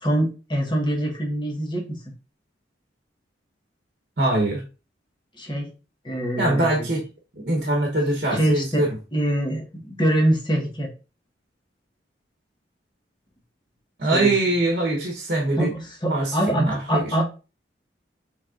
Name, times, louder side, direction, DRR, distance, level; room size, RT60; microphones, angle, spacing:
voice 1, 0.0-2.0 5.3-5.7 6.0-6.9 8.3-8.8 9.1-10.9 14.1-14.3 15.6-17.2, right 1 dB, 25° left, 0 dB, 1.2 m, -24 dB
voice 2, 4.2-4.6 6.4-7.0 7.4-8.9 14.0-15.7 16.1-17.2, right 1 dB, 55° right, 1 dB, 1.0 m, -23 dB
6.2 x 3.4 x 2.5 m, 0.32 s
head